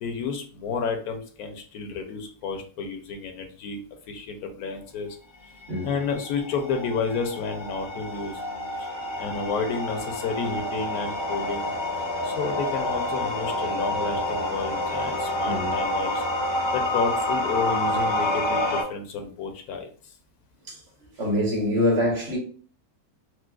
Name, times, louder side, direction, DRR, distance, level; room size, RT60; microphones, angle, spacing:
voice 1, 0.0-5.2 5.4-5.5 5.8-8.4 8.8-8.9 9.1-11.7 12.2-16.2 16.7-20.1, left 5 dB, 80° left, 1.1 m, -31 dB
sound 1, 5.6-18.8, left 1 dB, 45° left, 0.3 m, -28 dB
voice 2, 21.2-22.4, left 1 dB, 45° right, 1.2 m, -24 dB
4.6 x 2.1 x 2.3 m
omnidirectional pair, 1.6 m